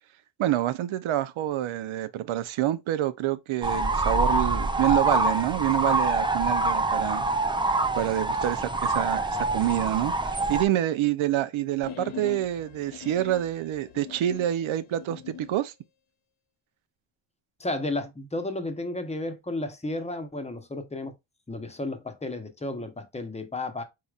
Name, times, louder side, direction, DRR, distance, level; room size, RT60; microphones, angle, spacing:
voice 1, 0.4-7.2 8.0-15.7, right 13 dB, 80° right, 0.7 m, -27 dB
sound 1, 3.6-10.6, right 2 dB, 10° right, 0.3 m, -25 dB
sound 2, 11.8-15.6, left 8 dB, 85° left, 0.8 m, -42 dB
voice 2, 17.6-21.1 21.5-23.8, left 2 dB, 15° left, 0.8 m, -33 dB
4.8 x 4.1 x 2.4 m
cardioid pair, 110°, 48 cm